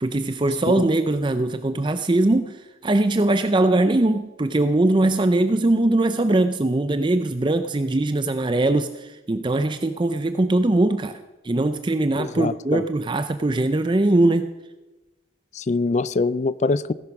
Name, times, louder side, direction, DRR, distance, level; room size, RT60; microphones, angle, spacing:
voice 1, 0.0-14.5, right 2 dB, 25° right, 0.5 m, -21 dB
voice 2, 12.2-12.8 15.5-16.9, left 3 dB, 35° left, 0.4 m, -24 dB
17.0 x 11.0 x 5.9 m
head